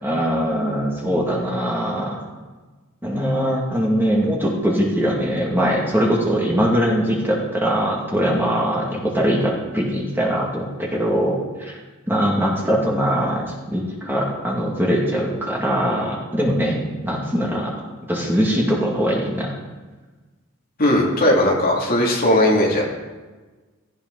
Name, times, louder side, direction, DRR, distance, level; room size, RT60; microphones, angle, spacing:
voice 1, 0.0-2.2 3.0-11.8 12.1-16.8 17.0-17.7 18.1-19.5, equal, 10° right, -3 dB, 2.2 m, -21 dB
voice 2, 20.8-22.8, left 1 dB, 40° left, -2 dB, 2.7 m, -17 dB
16.5 x 14.0 x 4.0 m, 1.3 s
head